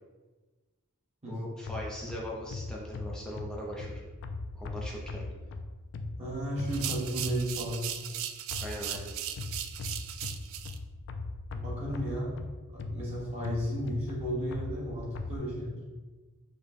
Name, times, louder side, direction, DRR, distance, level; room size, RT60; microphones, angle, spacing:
voice 1, 1.3-4.0 4.5-5.3 8.6-9.1, equal, 5° left, -4 dB, 0.5 m, -40 dB
sound 1, 1.7-7.7 8.5-15.4, left 3 dB, 55° left, 0.3 m, -40 dB
voice 2, 6.2-7.8 11.5-12.4 12.7-15.8, equal, 30° right, -6 dB, 1.2 m, -34 dB
sound 2, 6.7-10.8, right 11 dB, 65° right, 0.3 m, -37 dB
5.0 x 2.1 x 4.1 m, 1.3 s
head